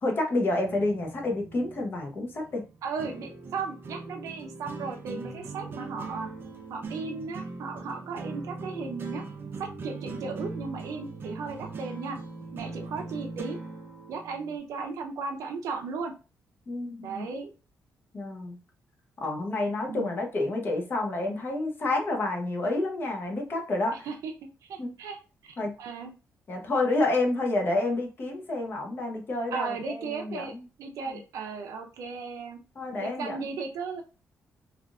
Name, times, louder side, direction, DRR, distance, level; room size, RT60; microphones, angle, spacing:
voice 1, 0.0-2.6 16.7-17.3 18.1-18.6 19.2-23.9 24.8-24.9 25.6-25.7 26.5-30.6 31.1-31.2 32.7-33.4, left 2 dB, 40° left, 1 dB, 0.8 m, -29 dB
sound 1, 0.6-14.6, right 3 dB, 40° right, 0.5 m, -40 dB
voice 2, 2.8-6.3 6.7-9.2 9.6-12.2 12.5-13.6 14.1-16.1 17.0-17.5 19.8-20.1 24.0-24.3 24.6-26.1 29.5-30.5 30.8-32.6 33.0-34.0, right 5 dB, 85° right, 4 dB, 0.6 m, -36 dB
3.5 x 2.5 x 2.4 m, 0.33 s
cardioid pair, 130°, 5 cm